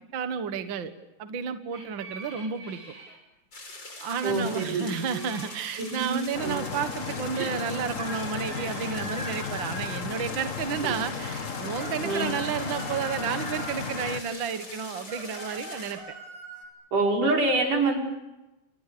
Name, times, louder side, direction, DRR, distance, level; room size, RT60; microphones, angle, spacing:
voice 1, 0.1-0.9 1.2-2.8 4.0-16.0, right 7 dB, 50° right, 9 dB, 1.7 m, -31 dB
sound 1, 1.7-3.2 4.8-6.3 8.0-10.7 11.5-13.9 15.0-16.7, right 2 dB, 25° right, 5.5 m, -43 dB
sound 2, 3.5-15.9, left 2 dB, 35° left, 6.1 m, -43 dB
voice 2, 4.2-5.2 5.8-6.5 7.4-7.5 10.8-10.9 12.0-12.3 16.9-18.0, right 3 dB, 80° right, 1 dB, 6.6 m, -26 dB
sound 3, 6.3-14.2, left 6 dB, 60° left, 0.7 m, -35 dB
28.5 x 28.0 x 6.9 m, 1.0 s
omnidirectional pair, 3.6 m